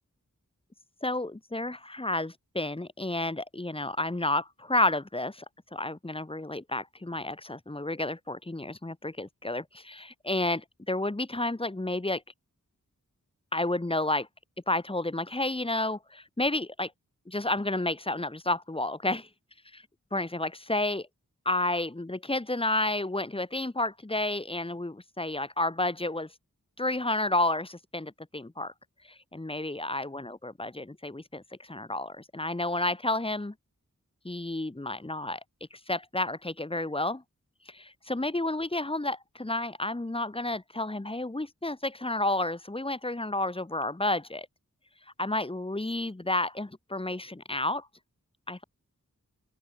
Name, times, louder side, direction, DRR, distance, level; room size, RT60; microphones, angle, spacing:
voice 1, 1.0-5.4 5.7-12.2 13.5-14.3 14.7-16.9 17.3-19.3 19.7-19.8 20.1-21.1 21.4-26.3 26.8-28.7 29.3-33.5 34.2-35.4 35.7-37.2 37.7-44.5 45.2-47.9 48.5-48.6, left 2 dB, 15° left, 1.1 m, -31 dB
open air
wide cardioid pair, 50°, 33 cm